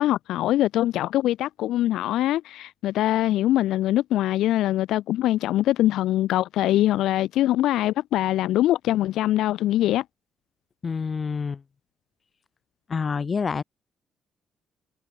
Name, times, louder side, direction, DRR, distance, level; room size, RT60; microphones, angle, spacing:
voice 1, 0.0-10.0, left 14 dB, 85° left, 0.9 m, -23 dB
voice 2, 10.8-11.6 12.9-13.6, left 5 dB, 40° left, 2.2 m, -27 dB
cardioid pair, 90°, 0 cm